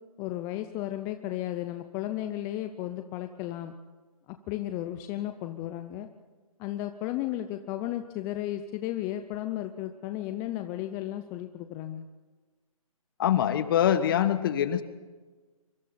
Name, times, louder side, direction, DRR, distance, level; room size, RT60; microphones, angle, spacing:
voice 1, 0.2-3.7 4.3-6.1 6.6-12.0, left 13 dB, 15° left, 8 dB, 0.6 m, -34 dB
voice 2, 13.2-14.8, left 10 dB, 35° left, 12 dB, 1.4 m, -24 dB
25.5 x 24.0 x 4.3 m, 1.3 s
figure-of-eight pair, 140°, 19 cm